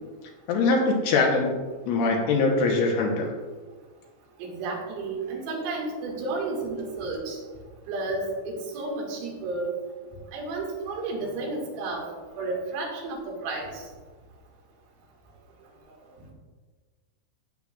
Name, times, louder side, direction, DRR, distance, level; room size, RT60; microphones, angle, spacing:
voice 1, 0.5-1.5 1.9-3.3, left 3 dB, 85° left, 0 dB, 2.3 m, -22 dB
voice 2, 4.4-7.4 7.9-9.7 10.3-12.1 12.4-13.8, right 3 dB, 85° right, -2 dB, 4.7 m, -32 dB
15.5 x 7.2 x 2.5 m, 1.4 s
omnidirectional pair, 6.0 m